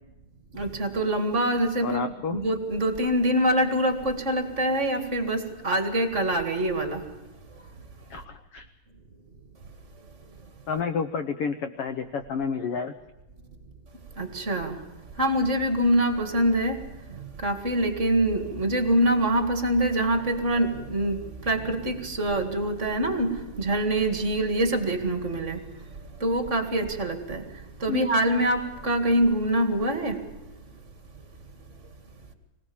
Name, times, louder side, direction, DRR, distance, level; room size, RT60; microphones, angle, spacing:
voice 1, 0.5-2.0 2.3-7.0 14.2-14.8 15.2-16.8 17.4-25.6 26.2-27.4 27.8-30.2, right 1 dB, 25° right, 8 dB, 1.7 m, -25 dB
voice 2, 1.8-2.4 8.1-8.7 10.7-12.9 27.9-28.0, left 5 dB, 80° left, 9 dB, 1.3 m, -30 dB
24.5 x 18.0 x 7.1 m, 1.1 s
omnidirectional pair, 4.0 m